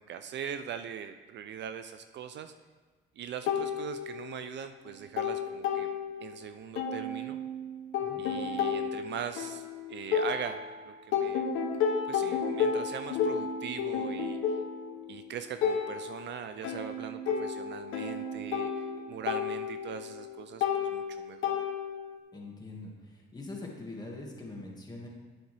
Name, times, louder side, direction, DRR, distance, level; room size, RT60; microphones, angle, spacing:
voice 1, 0.0-2.5 3.2-5.9 6.2-7.4 8.2-11.5 12.1-14.6 15.1-21.6, right 8 dB, 65° right, 9 dB, 0.5 m, -41 dB
sound 1, 3.5-4.6 4.9-6.4 6.8-10.8 11.1-22.2, left 6 dB, 85° left, 0.9 m, -32 dB
voice 2, 22.3-25.1, left 2 dB, 20° left, -2 dB, 1.9 m, -43 dB
9.3 x 7.1 x 3.4 m, 1.3 s
cardioid pair, 90°, 20 cm